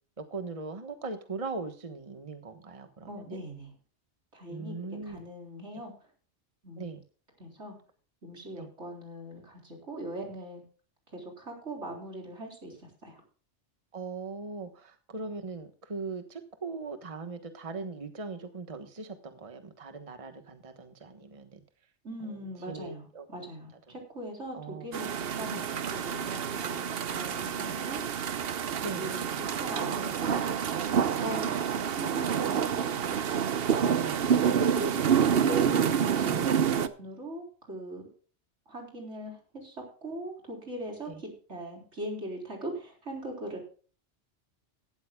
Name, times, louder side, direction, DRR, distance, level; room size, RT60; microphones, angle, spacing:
voice 1, 0.2-3.4 4.5-5.2 6.8-7.0 8.6-8.7 13.9-21.6 22.2-23.5 23.9-24.0 24.5-24.9 25.5-25.6 28.8-29.1 33.7-34.4 35.6-36.5 41.1-41.2, right 4 dB, 30° right, 7 dB, 1.3 m, -40 dB
voice 2, 3.1-3.7 4.3-4.8 5.0-5.9 6.6-6.9 7.4-7.8 8.2-10.6 11.1-13.2 22.0-28.0 29.0-29.2 29.5-30.5 30.9-33.2 34.4-38.1 38.7-43.6, right 1 dB, 85° right, 1 dB, 4.4 m, -40 dB
sound 1, 24.9-36.9, right 8 dB, 60° right, 0.9 m, -28 dB
17.0 x 12.5 x 2.3 m, 0.40 s
omnidirectional pair, 1.2 m